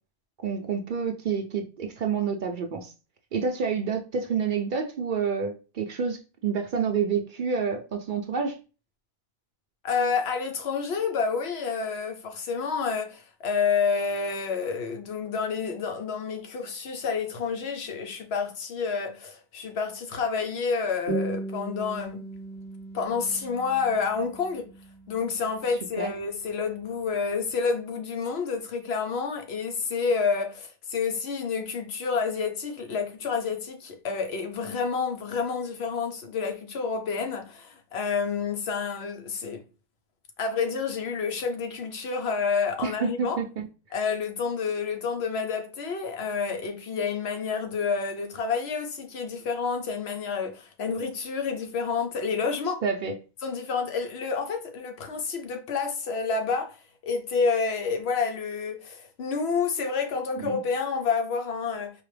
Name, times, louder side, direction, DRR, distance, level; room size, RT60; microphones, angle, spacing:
voice 1, 0.4-2.9 3.3-8.6 26.0-26.1 42.8-43.7 52.8-53.1 60.4-60.6, right 6 dB, 60° right, 0.6 m, -28 dB
voice 2, 9.8-22.3 22.9-24.7 25.1-39.6 40.4-43.4 43.9-52.8 53.4-56.8 57.0-61.9, left 5 dB, 75° left, 1.0 m, -29 dB
sound 1, 21.1-26.1, right 2 dB, 45° left, 1.5 m, -37 dB
4.7 x 2.1 x 3.2 m
omnidirectional pair, 1.1 m